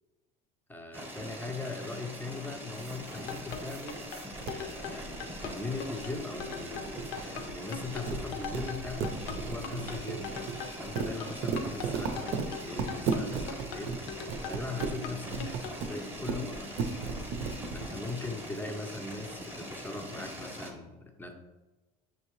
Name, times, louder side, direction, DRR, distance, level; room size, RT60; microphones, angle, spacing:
voice 1, 0.7-4.1 4.5-10.3 10.7-17.2 17.7-21.3, left 3 dB, 10° left, 4 dB, 0.5 m, -40 dB
sound 1, 0.9-20.7, equal, 10° right, 0.9 m, -43 dB
sound 2, 2.8-5.7 6.0-7.5 7.8-14.0 14.3-14.9 15.3-18.1, right 5 dB, 60° right, 0.6 m, -35 dB
sound 3, 3.0-15.8, left 7 dB, 75° left, 0.7 m, -41 dB
6.4 x 2.7 x 3.1 m, 1.1 s
cardioid pair, 125°, 19 cm